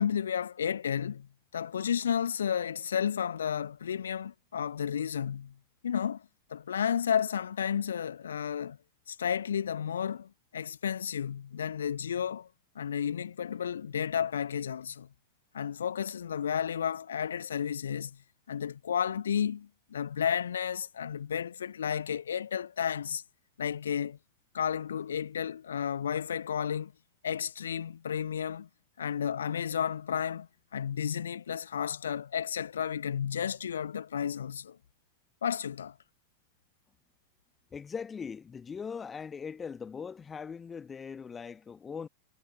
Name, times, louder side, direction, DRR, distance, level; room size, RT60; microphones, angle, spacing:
voice 1, 0.0-5.5 5.8-6.2 6.5-8.8 9.1-12.5 12.7-15.1 15.5-18.2 18.5-23.2 23.6-24.2 24.5-26.9 27.2-28.7 29.0-34.8 35.4-36.0, left 8 dB, 65° left, 1.3 m, -32 dB
voice 2, 37.7-42.1, left 6 dB, 20° left, 1.2 m, -40 dB
figure-of-eight pair, 90°, 0 cm